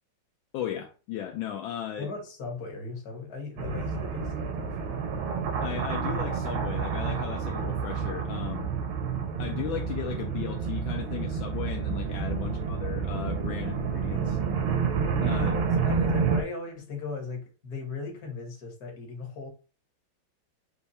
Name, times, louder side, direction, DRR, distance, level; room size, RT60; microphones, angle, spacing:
voice 1, 0.5-2.1 5.6-8.7 9.4-14.4 15.2-15.5, left 10 dB, 80° left, 1.3 m, -36 dB
voice 2, 2.0-5.1 12.4-12.8 15.5-19.5, left 4 dB, 55° left, 1.7 m, -38 dB
sound 1, 3.6-16.4, right 6 dB, 85° right, 1.5 m, -29 dB
4.4 x 2.3 x 4.0 m
omnidirectional pair, 2.2 m